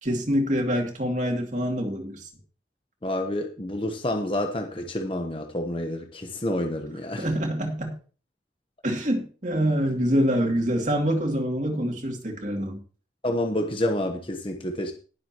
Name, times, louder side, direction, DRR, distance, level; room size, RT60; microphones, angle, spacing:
voice 1, 0.0-2.3 7.2-7.9 8.8-12.8, equal, 45° right, 2.6 m, -25 dB
voice 2, 3.0-7.3 13.2-14.9, left 1 dB, 30° left, 1.0 m, -28 dB
19.5 x 7.6 x 3.0 m
head